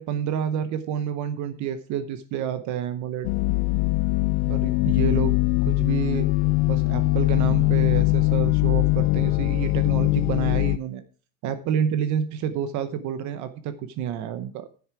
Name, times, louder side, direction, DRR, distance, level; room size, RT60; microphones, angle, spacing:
voice 1, 0.0-3.3 4.4-5.4 5.6-6.3 6.7-11.0 11.4-14.7, right 9 dB, 45° right, 12 dB, 0.9 m, -29 dB
sound 1, 3.2-10.8, left 23 dB, 80° left, 0.5 m, -21 dB
10.5 x 9.4 x 4.8 m, 0.38 s
cardioid pair, 175°, 41 cm